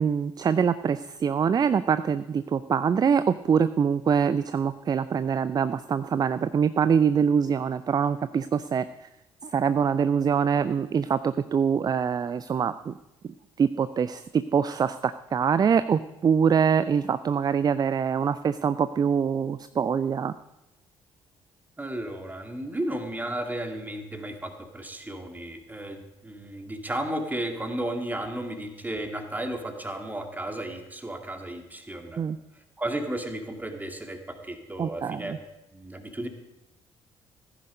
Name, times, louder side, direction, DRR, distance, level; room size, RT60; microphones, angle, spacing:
voice 1, 0.0-8.8 9.4-12.9 13.6-20.3 32.2-32.4 34.8-35.2, right 7 dB, 30° right, 14 dB, 0.5 m, -24 dB
voice 2, 21.8-32.2 32.5-35.4 35.7-36.3, right 1 dB, 15° right, 4 dB, 2.1 m, -34 dB
15.5 x 10.0 x 5.3 m, 0.96 s
figure-of-eight pair, 45°, 14 cm